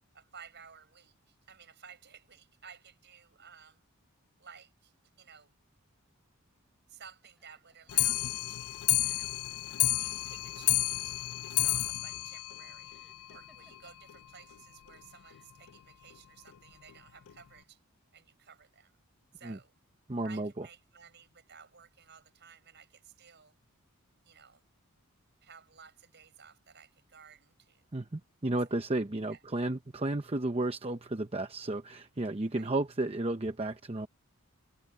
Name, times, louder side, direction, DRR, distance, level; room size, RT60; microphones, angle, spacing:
voice 1, 0.1-3.8 4.4-4.9 5.2-5.5 6.9-9.4 10.0-12.9 13.3-17.8 18.1-18.9 19.3-19.7 20.2-23.5 24.2-24.6 25.4-27.9 29.3-29.4 32.5-32.7, right 7 dB, 50° right, 5.9 m, -55 dB
sound 1, 7.2-10.8 11.1-11.8 12.9-14.1 15.1-15.7, equal, ahead, 6.6 m, -68 dB
Clock, 7.9-13.4 13.7-13.8 14.1-14.2 14.5-14.6 14.9-15.0 15.7-15.8 16.5-16.6 17.3-17.4, left 17 dB, 75° left, 0.4 m, -31 dB
voice 2, 20.1-20.7 27.9-34.1, right 2 dB, 30° right, 0.8 m, -33 dB
head